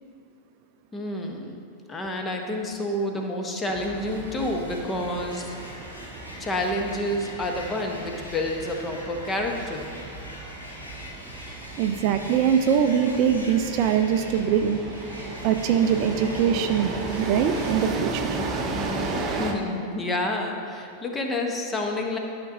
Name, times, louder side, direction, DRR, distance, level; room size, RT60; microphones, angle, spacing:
voice 1, 0.9-1.5 1.9-5.5 6.4-9.9 19.3-22.2, left 1 dB, 15° left, 2 dB, 0.9 m, -29 dB
sound 1, 3.6-17.9, left 1 dB, 85° left, 1.4 m, -43 dB
sound 2, 3.7-19.5, right 3 dB, 30° right, 0.9 m, -35 dB
voice 2, 11.8-14.8 15.4-18.4, right 8 dB, 45° right, 7 dB, 0.4 m, -22 dB
12.0 x 5.9 x 2.7 m, 2.4 s
figure-of-eight pair, 90°, 0 cm